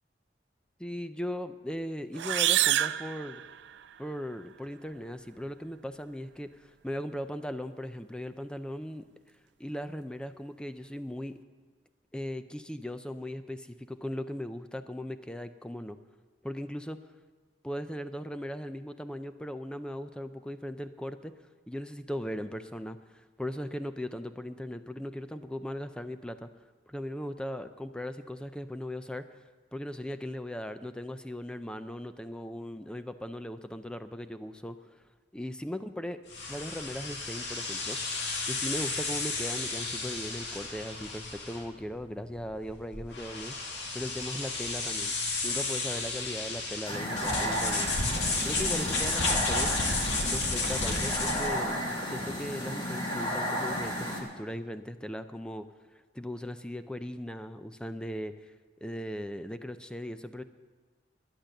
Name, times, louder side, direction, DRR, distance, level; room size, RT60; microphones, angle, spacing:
voice 1, 0.8-3.4 4.0-9.1 9.6-11.4 12.1-16.0 16.4-17.0 17.6-21.3 21.7-23.0 23.4-26.5 26.9-29.2 29.7-34.8 35.3-36.2 36.5-43.5 43.9-45.1 45.4-47.9 48.4-49.7 50.3-55.7 56.1-58.3 58.8-60.4, equal, 5° left, 10 dB, 0.5 m, -38 dB
sound 1, 2.1-4.0, right 13 dB, 75° right, 0.4 m, -28 dB
sound 2, 36.3-51.7, left 3 dB, 80° left, 2.0 m, -33 dB
sound 3, 46.8-54.2, equal, 30° left, 2.4 m, -33 dB
11.5 x 10.0 x 6.6 m, 1.4 s
head